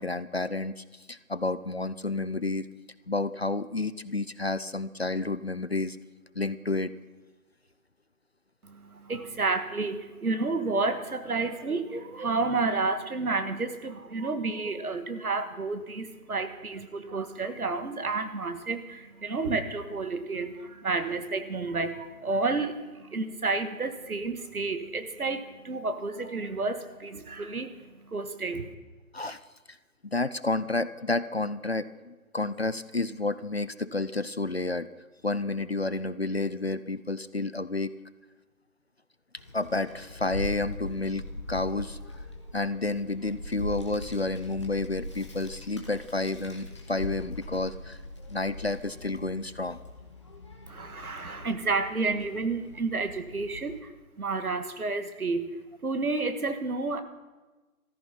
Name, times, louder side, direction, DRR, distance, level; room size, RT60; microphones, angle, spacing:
voice 1, 0.0-2.7 3.1-6.0 6.4-6.9 29.1-29.4 29.7-29.8 30.0-34.9 35.2-37.9 39.5-41.2 41.5-42.0 42.5-48.0 48.3-49.8, left 2 dB, 45° left, 14 dB, 0.4 m, -30 dB
voice 2, 8.6-28.7 50.7-53.9 54.2-55.5 55.8-57.0, right 3 dB, 75° right, 9 dB, 1.6 m, -30 dB
Child speech kid speaking, 39.4-53.8, left 1 dB, 20° left, 1.0 m, -41 dB
14.0 x 13.5 x 5.8 m, 1.2 s
figure-of-eight pair, 165°, 44 cm